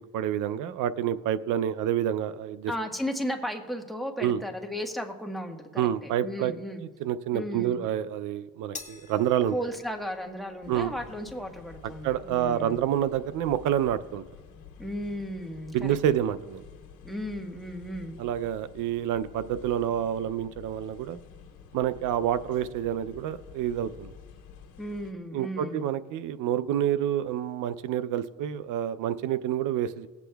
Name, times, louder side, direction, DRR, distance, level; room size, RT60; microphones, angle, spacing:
voice 1, 0.1-2.7 4.2-4.4 5.8-6.5 6.8-9.6 10.7-10.9 12.0-14.2 15.7-16.6 18.2-21.2 21.7-24.1 25.3-30.1, right 10 dB, 85° right, 13 dB, 0.5 m, -28 dB
voice 2, 2.7-6.8 7.3-7.8 9.5-12.8 14.8-16.0 17.0-18.2 24.8-25.9, equal, ahead, 4 dB, 1.3 m, -35 dB
sound 1, 8.7-15.3, left 4 dB, 25° left, 1.5 m, -51 dB
sound 2, 10.6-25.1, left 7 dB, 85° left, 1.3 m, -50 dB
20.0 x 8.2 x 2.3 m, 1.6 s
cardioid pair, 90°, 30 cm